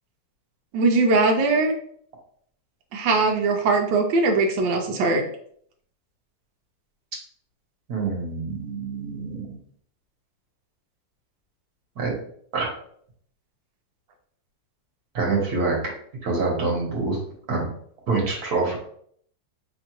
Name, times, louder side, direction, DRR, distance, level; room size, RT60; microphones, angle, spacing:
voice 1, 0.7-1.7 2.9-5.2, right 3 dB, 85° right, 2 dB, 1.4 m, -20 dB
voice 2, 7.9-9.6 12.0-12.1 12.5-12.7 15.1-15.8 16.2-17.2 17.5-17.7 18.1-18.8, right 3 dB, 60° right, -2 dB, 1.7 m, -25 dB
5.2 x 2.9 x 3.0 m, 0.63 s
omnidirectional pair, 1.9 m